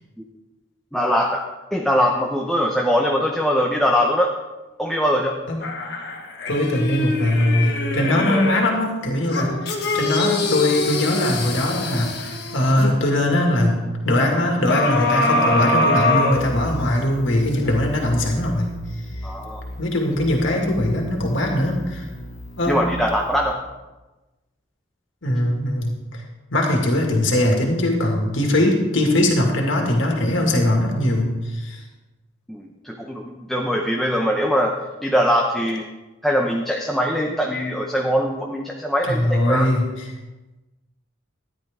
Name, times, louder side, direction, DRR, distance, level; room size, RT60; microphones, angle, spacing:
voice 1, 0.9-1.4 1.7-4.3 4.8-5.4 19.2-19.6 22.7-23.6 32.5-34.8 35.0-35.9 36.2-39.7, equal, ahead, 0 dB, 0.7 m, -21 dB
sound 1, 5.6-8.8 9.3-12.9 14.7-17.0 17.5-17.6, left 2 dB, 55° left, 1.5 m, -24 dB
voice 2, 6.5-13.8 14.0-18.7 19.8-22.1 22.6-22.8 25.2-26.2 26.5-31.8 39.0-40.1, left 1 dB, 70° left, 1 dB, 2.0 m, -21 dB
sound 2, 16.3-23.5, left 1 dB, 90° left, 2.0 m, -36 dB
14.0 x 10.5 x 3.6 m, 1.1 s
head